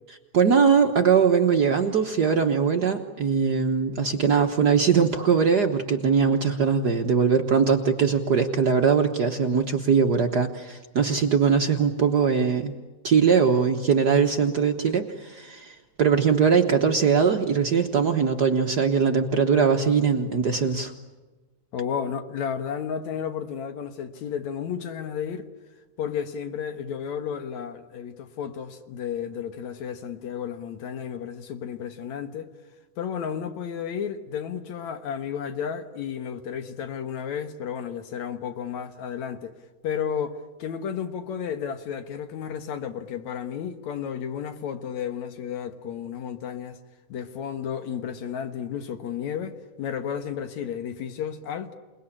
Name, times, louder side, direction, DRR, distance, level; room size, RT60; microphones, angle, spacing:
voice 1, 0.3-12.7 13.0-15.7 16.0-20.9, right 6 dB, 90° right, 0.8 m, -21 dB
voice 2, 21.7-25.5 26.0-32.5 33.0-39.6 39.8-46.8 47.1-51.7, left 8 dB, 65° left, 2.5 m, -32 dB
28.5 x 20.0 x 10.0 m
omnidirectional pair, 3.7 m